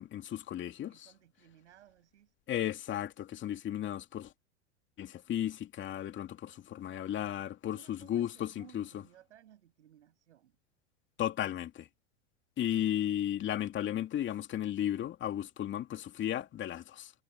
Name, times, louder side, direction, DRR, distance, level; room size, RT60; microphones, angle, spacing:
voice 1, 0.0-1.1 2.5-4.3 5.0-8.8 11.2-11.9 12.6-17.1, left 11 dB, 35° left, 2.6 m, -34 dB
voice 2, 0.9-2.3 7.4-10.6, right 11 dB, 80° right, 7.8 m, -60 dB
hypercardioid pair, 105°, 34 cm